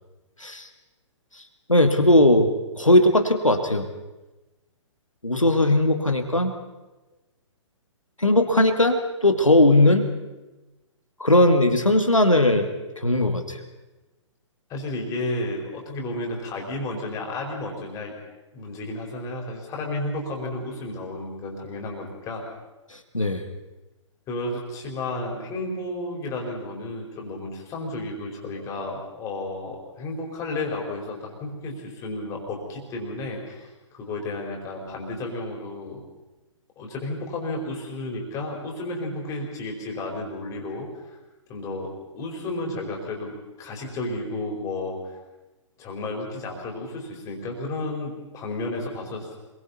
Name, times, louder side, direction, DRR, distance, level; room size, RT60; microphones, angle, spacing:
voice 1, 1.7-2.5 2.8-3.9 5.2-6.5 8.2-10.1 11.2-12.7 13.0-13.6 23.1-23.4, left 1 dB, 85° left, 5 dB, 2.3 m, -18 dB
voice 2, 14.7-18.1 18.5-22.4 24.3-36.0 36.8-41.2 41.5-45.2 45.8-49.4, left 2 dB, 20° left, 0 dB, 4.7 m, -32 dB
27.0 x 22.5 x 4.3 m, 1.1 s
figure-of-eight pair, 120°, 16 cm